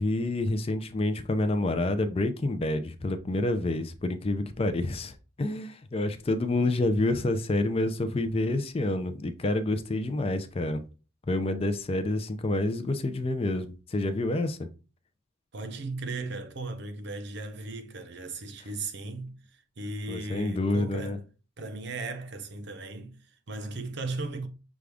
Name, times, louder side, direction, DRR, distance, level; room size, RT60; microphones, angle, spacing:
voice 1, 0.0-10.8 11.3-14.6 20.1-21.2, left 2 dB, 30° left, 0.4 m, -28 dB
voice 2, 15.5-21.2 21.6-24.5, right 3 dB, 55° right, 0.7 m, -37 dB
6.2 x 2.4 x 3.4 m
head